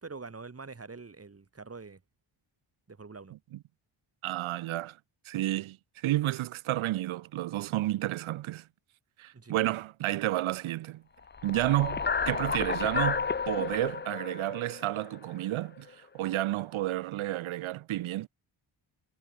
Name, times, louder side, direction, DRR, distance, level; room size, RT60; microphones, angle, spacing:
voice 1, 0.0-2.0 2.9-3.3 9.3-9.6, right 4 dB, 30° right, 8.0 m, -45 dB
voice 2, 4.2-5.0 5.3-5.8 6.0-8.6 9.2-11.0 11.4-15.9 16.1-18.3, right 15 dB, 80° right, 0.7 m, -31 dB
sound 1, 11.3-15.6, left 5 dB, 20° left, 0.7 m, -32 dB
wide cardioid pair, 120°, 48 cm